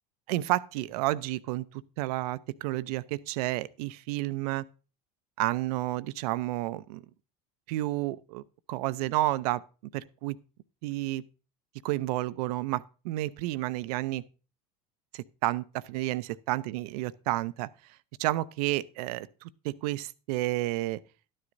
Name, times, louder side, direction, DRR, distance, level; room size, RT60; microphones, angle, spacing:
voice 1, 0.3-4.6 5.4-7.0 7.7-8.4 8.7-9.6 9.9-10.4 10.8-11.2 11.8-14.2 15.1-17.7 18.2-21.0, right 17 dB, 70° right, 0.5 m, -31 dB
12.0 x 9.9 x 2.6 m
hypercardioid pair, 95°, 21 cm